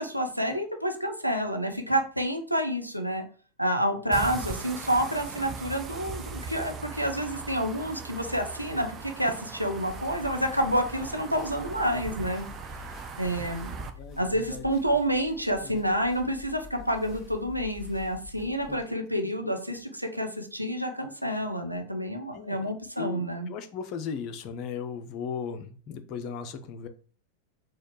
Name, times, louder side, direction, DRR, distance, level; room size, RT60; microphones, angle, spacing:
voice 1, 0.0-3.2 3.6-12.4 13.2-13.7 14.2-23.5, equal, 90° right, 4 dB, 0.7 m, -29 dB
sound 1, 4.1-13.9, right 5 dB, 25° right, 0.5 m, -39 dB
sound 2, 9.9-18.8, left 3 dB, 5° left, 1.9 m, -47 dB
voice 2, 14.0-14.6 15.7-15.8 18.7-18.8 22.3-22.7 23.0-26.9, left 6 dB, 40° left, 8 dB, 0.6 m, -37 dB
4.2 x 2.3 x 4.5 m, 0.42 s
figure-of-eight pair, 90°, 0 cm